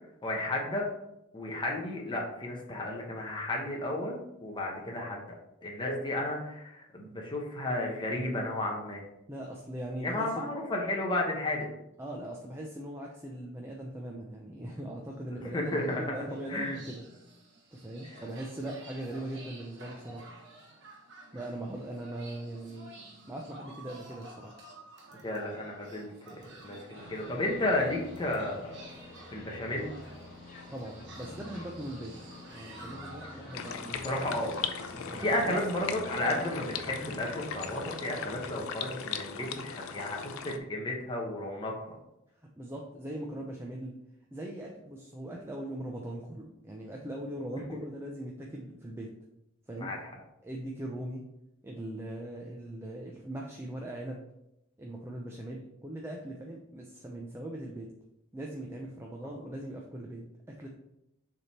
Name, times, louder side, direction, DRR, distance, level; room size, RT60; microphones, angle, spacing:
voice 1, 0.2-0.9 1.3-5.4 5.6-9.0 10.0-11.7 15.4-16.0 16.5-16.8 18.1-18.2 25.2-28.8 29.3-29.9 33.2-33.4 33.8-34.5 34.9-42.0 49.8-50.1 59.2-59.3, left 1 dB, 25° left, -1 dB, 1.0 m, -33 dB
voice 2, 9.3-10.5 12.0-17.0 17.7-20.3 21.3-22.9 23.3-24.5 30.7-32.1 32.5-34.1 35.1-35.6 42.6-44.0 44.3-49.1 49.7-49.9 50.4-51.2 51.6-54.2 54.8-57.9 58.3-60.7, right 1 dB, 10° right, -1 dB, 0.6 m, -40 dB
sound 1, 15.6-35.4, right 1 dB, 60° right, 1.4 m, -51 dB
sound 2, 26.9-38.6, left 2 dB, 50° left, 1.8 m, -48 dB
sound 3, 33.5-40.6, left 6 dB, 75° left, 0.5 m, -39 dB
6.8 x 3.5 x 4.3 m, 0.86 s
head